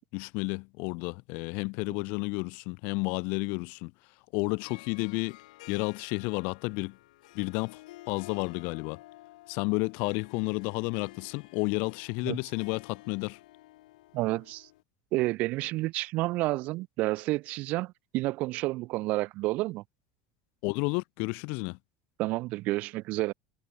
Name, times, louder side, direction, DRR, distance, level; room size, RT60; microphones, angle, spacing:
voice 1, 0.0-3.9 4.3-5.4 5.7-7.0 7.3-7.8 8.1-9.0 9.5-13.4 20.6-21.8, left 31 dB, 50° left, 0.6 m, -31 dB
Harp, 4.5-14.8, left 18 dB, 85° left, 2.2 m, -52 dB
voice 2, 14.1-14.7 15.1-19.8 22.2-23.3, right 20 dB, 40° right, 0.4 m, -30 dB
supercardioid pair, 175°, 4 cm